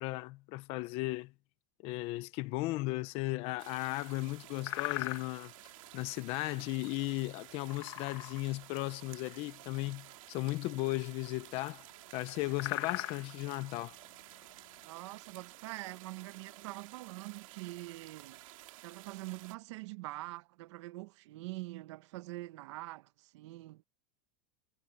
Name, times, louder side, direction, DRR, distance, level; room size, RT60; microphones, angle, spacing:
voice 1, 0.0-1.3 1.8-5.5 5.9-11.9 12.1-14.0, left 20 dB, 35° left, 0.7 m, -36 dB
sound 1, 3.0-3.6 4.0-4.2 4.6-5.7 7.5-8.6 8.9-9.0 9.3-9.6 10.5-11.7 11.9-12.0 12.3-15.1, left 19 dB, 55° left, 1.1 m, -40 dB
sound 2, 3.6-19.5, right 17 dB, 75° right, 2.7 m, -53 dB
voice 2, 14.8-18.4 18.8-23.8, right 20 dB, 60° right, 1.0 m, -44 dB
supercardioid pair, 175°, 17 cm